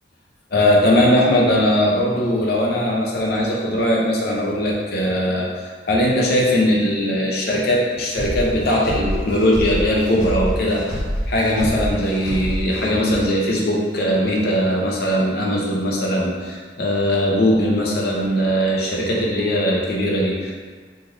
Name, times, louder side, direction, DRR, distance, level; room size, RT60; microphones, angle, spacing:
voice 1, 0.5-11.0 11.3-20.5, equal, 55° left, -3 dB, 0.6 m, -20 dB
sound 1, 8.1-13.2, equal, 85° left, 1.0 m, -27 dB
3.2 x 2.5 x 2.5 m, 1.5 s
head